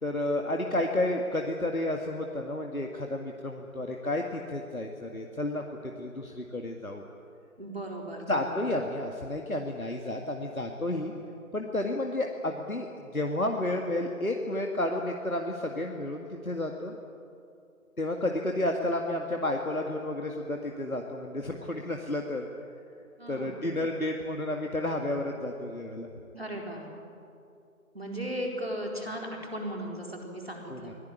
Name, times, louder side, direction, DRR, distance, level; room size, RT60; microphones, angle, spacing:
voice 1, 0.0-5.6 6.0-7.1 8.1-11.1 11.5-16.9 18.0-22.5 23.3-26.1 30.7-30.9, left 1 dB, 70° left, 2 dB, 2.2 m, -31 dB
voice 2, 7.6-8.6 23.2-23.6 26.3-26.9 27.9-30.9, equal, 45° right, 0 dB, 4.3 m, -36 dB
25.0 x 17.5 x 9.9 m, 2.6 s
figure-of-eight pair, 180°, 44 cm